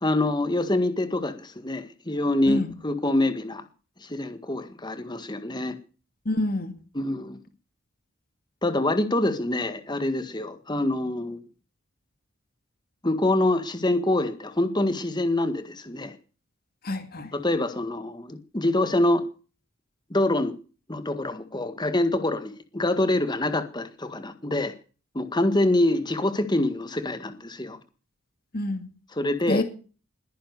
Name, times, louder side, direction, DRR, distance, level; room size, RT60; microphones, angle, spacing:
voice 1, 0.0-3.6 4.0-5.8 7.0-7.4 8.6-11.4 13.0-16.1 17.3-19.2 20.1-20.5 20.9-24.7 25.1-27.8 29.2-29.6, left 1 dB, 20° left, 10 dB, 1.8 m, -25 dB
voice 2, 6.2-6.7 16.8-17.3 28.5-28.9 29.5-29.6, left 1 dB, 45° left, 8 dB, 2.4 m, -27 dB
21.0 x 10.5 x 6.8 m, 0.39 s
head